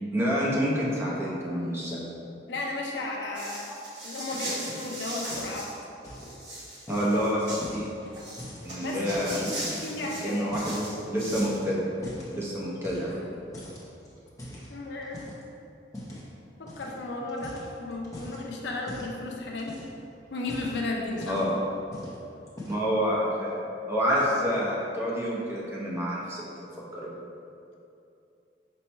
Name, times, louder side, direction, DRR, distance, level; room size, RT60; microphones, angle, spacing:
voice 1, 0.1-2.0 6.9-7.9 8.6-9.4 10.2-11.9 12.3-13.1 21.2-21.5 22.7-23.6 23.9-26.4 26.9-27.1, equal, 15° right, -6 dB, 0.7 m, -28 dB
voice 2, 2.5-3.7 4.0-5.7 8.8-9.5 9.8-10.6 14.7-15.3 16.6-19.8 20.3-21.4, left 2 dB, 70° left, -1 dB, 0.5 m, -34 dB
sound 1, 3.3-5.7 6.1-7.7 8.1-11.6, right 1 dB, 70° right, 1.4 m, -38 dB
sound 2, 5.3-5.7 6.0-6.4 6.9-9.4 9.8-10.9 11.2-12.3 12.8-13.3 13.5-15.4 15.9-16.3 16.7-16.9 17.3-18.4 18.9-19.2 19.5-20.0 20.4-21.6 21.9-22.2 22.5-22.9, left 1 dB, 20° left, 0.6 m, -42 dB
4.3 x 2.2 x 4.3 m, 2.7 s
head